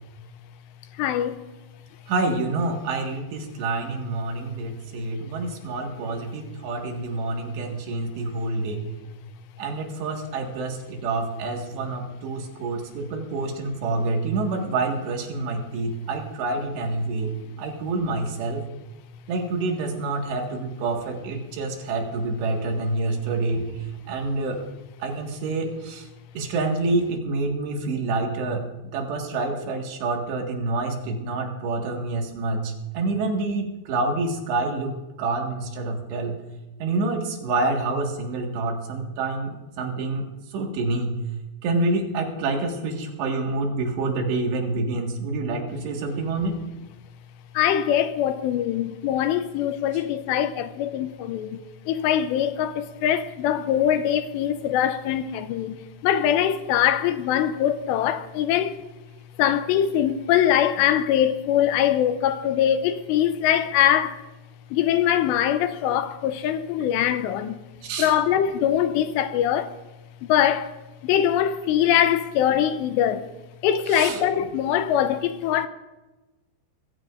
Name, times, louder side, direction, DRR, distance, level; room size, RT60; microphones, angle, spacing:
voice 1, 1.0-1.4 47.5-51.6 51.9-55.8 56.0-58.8 59.4-64.2 64.7-67.6 68.0-69.7 70.2-70.7 71.0-73.3 73.6-75.7, left 10 dB, 80° left, 2.8 m, -22 dB
voice 2, 2.1-8.8 9.6-17.3 17.6-18.6 19.3-23.6 24.1-24.6 25.0-26.1 26.4-28.6 28.9-36.4 36.8-40.3 40.5-41.2 41.6-46.6 67.8-68.2 73.9-74.4, right 3 dB, 70° right, 3.9 m, -27 dB
22.5 x 14.5 x 2.5 m
omnidirectional pair, 5.2 m